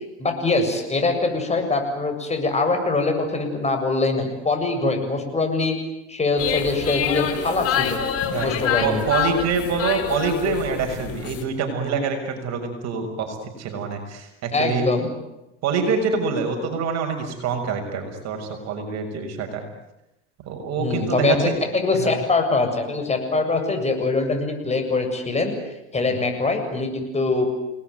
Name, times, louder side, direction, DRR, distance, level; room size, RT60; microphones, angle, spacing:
voice 1, 0.2-5.7 6.1-8.0 8.4-9.0 14.5-15.1 20.8-21.4 21.7-25.6 25.9-27.5, left 3 dB, 20° left, 5 dB, 7.7 m, -23 dB
sound 1, 6.4-11.4, left 8 dB, 45° left, 4.5 m, -26 dB
voice 2, 8.8-14.9 15.6-19.6 20.4-21.5 21.9-22.1, right 5 dB, 50° right, 4 dB, 6.5 m, -25 dB
29.0 x 20.0 x 9.5 m, 0.90 s
hypercardioid pair, 95°, 33 cm